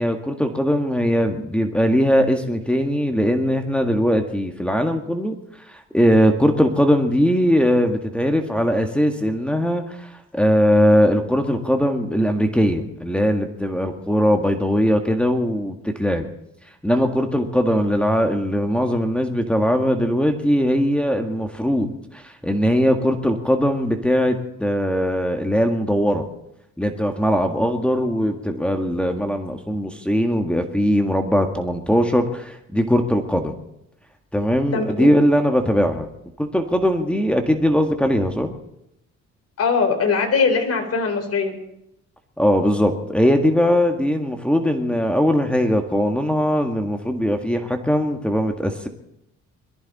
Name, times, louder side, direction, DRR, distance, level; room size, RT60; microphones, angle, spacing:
voice 1, 0.0-16.3 16.8-26.3 26.8-33.5 34.3-36.1 36.4-38.6 42.4-48.9, equal, 5° left, 3 dB, 1.8 m, -20 dB
voice 2, 34.7-35.1 39.6-41.5, left 5 dB, 55° left, 5 dB, 3.9 m, -21 dB
22.0 x 14.0 x 4.2 m, 0.81 s
cardioid pair, 90°, 30 cm